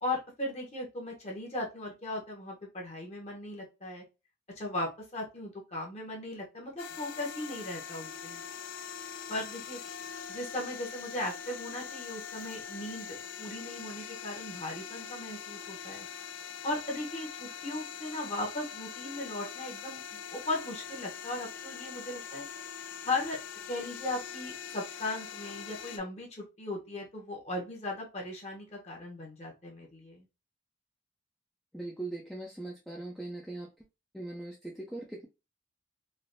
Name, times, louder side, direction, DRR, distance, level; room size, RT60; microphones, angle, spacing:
voice 1, 0.0-4.0 4.6-8.4 9.3-9.8 10.3-16.1 16.6-20.0 20.3-22.4 23.0-23.4 23.7-30.2, left 2 dB, 35° left, 0 dB, 0.8 m, -37 dB
sound 1, 6.8-26.0, left 7 dB, 85° left, 0.4 m, -43 dB
voice 2, 31.7-33.7 34.1-35.3, right 2 dB, ahead, -2 dB, 0.3 m, -40 dB
3.2 x 2.5 x 2.5 m, 0.28 s
head